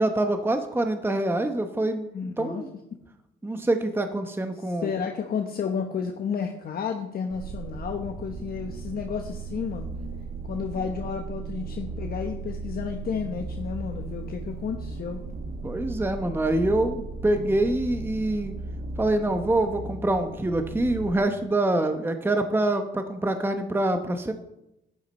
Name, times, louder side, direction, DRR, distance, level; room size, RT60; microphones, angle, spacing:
voice 1, 0.0-2.1 2.4-2.7 3.4-4.9 15.6-18.5 19.0-24.3, right 1 dB, 10° right, 7 dB, 0.9 m, -25 dB
voice 2, 2.1-2.6 4.5-9.9 10.4-15.2, left 6 dB, 50° left, 4 dB, 1.1 m, -32 dB
sound 1, 7.3-21.2, right 3 dB, 50° right, 1.8 m, -36 dB
11.0 x 10.5 x 4.3 m, 0.86 s
cardioid pair, 90°, 20 cm